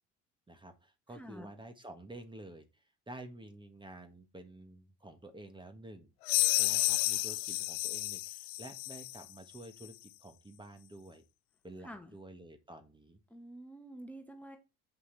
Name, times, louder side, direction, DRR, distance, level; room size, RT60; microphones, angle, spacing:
voice 1, 0.5-6.1 6.5-11.2 11.6-13.2, right 1 dB, 15° right, 1.7 m, -50 dB
voice 2, 1.1-1.5 11.8-12.1 13.3-14.6, right 1 dB, 5° left, 1.5 m, -48 dB
sound 1, 6.3-9.2, left 21 dB, 85° left, 0.5 m, -31 dB
8.0 x 5.5 x 4.1 m
supercardioid pair, 75°, 31 cm